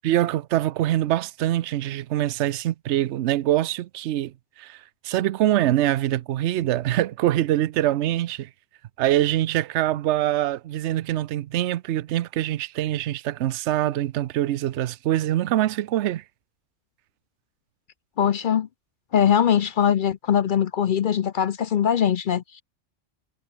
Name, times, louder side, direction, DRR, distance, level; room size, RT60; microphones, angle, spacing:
voice 1, 0.0-8.5 9.0-16.2, right 13 dB, 75° right, 0.9 m, -24 dB
voice 2, 18.2-18.7 19.1-22.6, left 9 dB, 55° left, 0.6 m, -21 dB
omnidirectional pair, 1.2 m